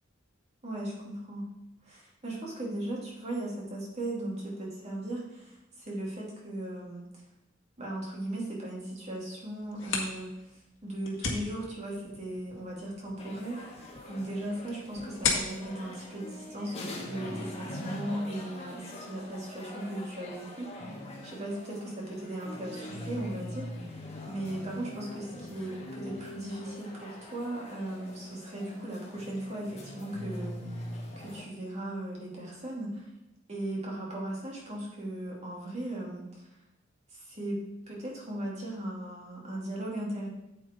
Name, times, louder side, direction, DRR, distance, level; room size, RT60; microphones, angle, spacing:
voice 1, 0.6-1.5 1.8-7.1 7.8-10.5 10.8-13.6 14.1-24.0 24.2-30.8 31.2-33.0 33.5-36.4 37.1-37.6 37.9-40.3, right 1 dB, 35° right, -4 dB, 2.8 m, -37 dB
sound 1, 9.6-17.1, left 4 dB, 70° left, 1.8 m, -37 dB
sound 2, 13.2-31.4, left 1 dB, 35° left, 1.9 m, -43 dB
9.1 x 8.2 x 3.8 m, 0.90 s
head